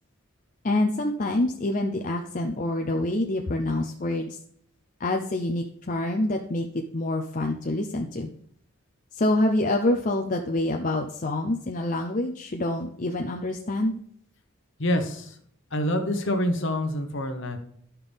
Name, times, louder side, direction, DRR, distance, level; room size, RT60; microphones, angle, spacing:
voice 1, 0.6-4.4 5.0-6.7 6.9-8.3 9.1-14.0, left 1 dB, 35° left, 2 dB, 0.5 m, -26 dB
voice 2, 14.8-15.4 15.7-17.6, left 1 dB, 55° left, 5 dB, 1.1 m, -26 dB
11.0 x 5.8 x 3.5 m, 0.63 s
head